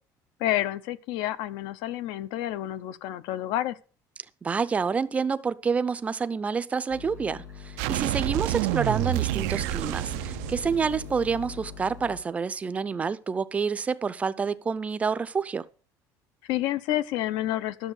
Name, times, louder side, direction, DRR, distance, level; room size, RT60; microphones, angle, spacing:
voice 1, 0.4-3.8 16.4-17.9, left 14 dB, 70° left, 0.8 m, -29 dB
voice 2, 4.4-15.7, right 5 dB, 15° right, 0.5 m, -28 dB
sound 1, 6.9-12.2, left 6 dB, 55° left, 2.3 m, -42 dB
sound 2, 7.8-11.5, right 19 dB, 90° right, 0.5 m, -29 dB
12.5 x 6.8 x 6.4 m
cardioid pair, 165°, 8 cm